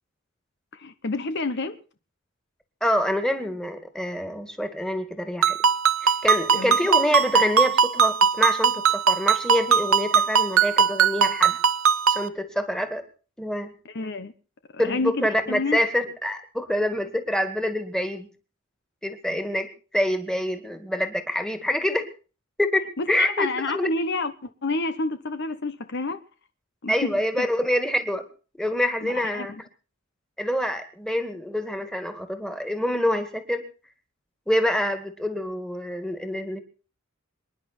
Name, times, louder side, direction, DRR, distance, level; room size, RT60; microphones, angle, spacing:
voice 1, 0.8-1.8 6.5-6.8 13.8-14.3 14.7-15.8 23.0-26.2 26.8-27.5 29.0-29.6, left 3 dB, 55° left, 1.0 m, -29 dB
voice 2, 2.8-5.6 6.0-11.6 12.1-13.0 13.4-13.7 14.8-18.3 19.0-19.7 19.9-22.1 22.6-23.5 23.7-23.9 26.9-28.3 28.6-29.5 30.4-33.6 34.5-36.6, left 1 dB, 5° left, 2.2 m, -26 dB
Ringtone, 5.4-12.3, right 6 dB, 80° right, 0.9 m, -20 dB
26.0 x 10.5 x 4.4 m
head